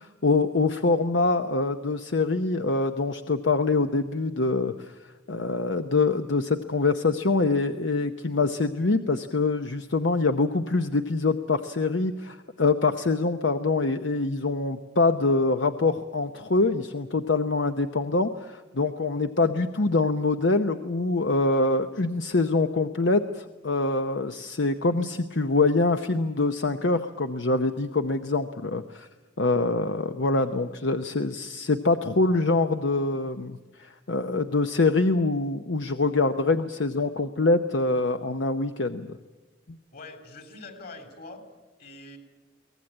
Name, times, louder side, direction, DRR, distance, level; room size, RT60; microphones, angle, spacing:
voice 1, 0.0-4.9 5.3-29.1 29.4-39.1, left 3 dB, 70° left, 8 dB, 0.8 m, -25 dB
voice 2, 39.9-41.4 41.8-42.2, left 3 dB, 50° left, 6 dB, 3.5 m, -43 dB
23.5 x 18.5 x 8.7 m, 1.2 s
head